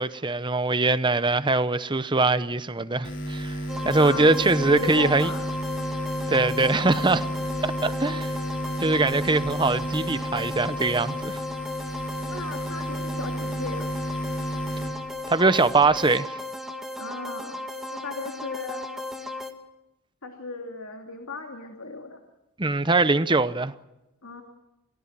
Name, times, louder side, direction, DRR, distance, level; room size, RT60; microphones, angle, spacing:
voice 1, 0.0-3.6 3.8-5.3 6.3-7.2 7.6-8.3 8.8-11.4 15.3-16.3 22.6-23.7, right 3 dB, 20° right, 0.8 m, -22 dB
sound 1, 3.0-16.0, right 1 dB, 55° left, 3.3 m, -32 dB
sound 2, 3.7-19.5, left 2 dB, ahead, 1.8 m, -35 dB
voice 2, 4.0-5.4 12.3-13.9 17.0-17.7 17.9-18.9 20.2-22.2 24.2-24.4, left 3 dB, 75° left, 2.7 m, -36 dB
28.5 x 18.0 x 7.5 m
head